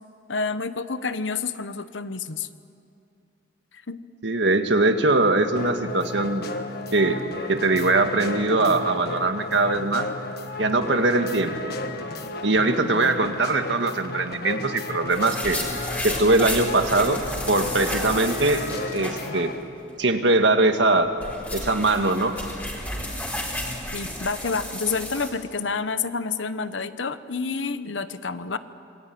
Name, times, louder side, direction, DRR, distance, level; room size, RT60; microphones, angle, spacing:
voice 1, 0.3-2.5 3.9-4.0 12.8-13.4 23.9-28.6, left 4 dB, 85° left, 12 dB, 1.1 m, -29 dB
voice 2, 4.2-6.5 6.9-7.2 7.5-10.1 10.6-11.5 12.4-15.6 16.0-17.2 17.5-18.6 18.9-19.5 20.0-21.1 21.5-22.3, right 2 dB, 70° right, 6 dB, 1.8 m, -21 dB
sound 1, 5.6-19.6, left 2 dB, 55° left, 1.6 m, -34 dB
sound 2, 15.1-19.6 19.9-20.0 20.9-25.3, left 1 dB, 10° left, 4.4 m, -32 dB
26.5 x 22.0 x 9.4 m, 2.6 s
head